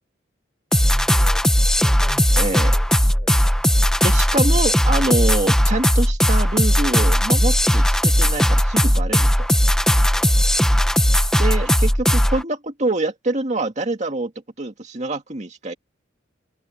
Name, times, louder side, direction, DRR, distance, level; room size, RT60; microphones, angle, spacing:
sound 1, 0.7-12.4, equal, 5° left, 1.4 m, -17 dB
voice 1, 0.8-1.5 1.8-4.0 10.1-11.0, equal, 30° left, 4.8 m, -42 dB
voice 2, 2.4-2.8 4.0-9.5 11.4-14.3 14.6-15.7, right 2 dB, 35° right, 2.1 m, -25 dB
head